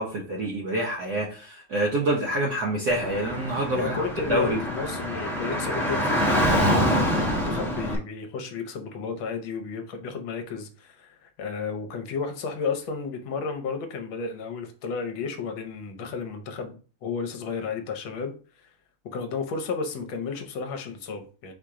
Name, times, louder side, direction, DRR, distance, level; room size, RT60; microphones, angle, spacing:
voice 1, 0.0-4.0 4.3-4.6, right 1 dB, 60° right, 1.1 m, -26 dB
Car / Traffic noise roadway noise, 2.9-8.0, equal, 5° left, 0.4 m, -25 dB
voice 2, 3.7-18.3 19.0-21.5, left 5 dB, 70° left, 1.5 m, -33 dB
4.9 x 2.9 x 3.6 m
omnidirectional pair, 2.4 m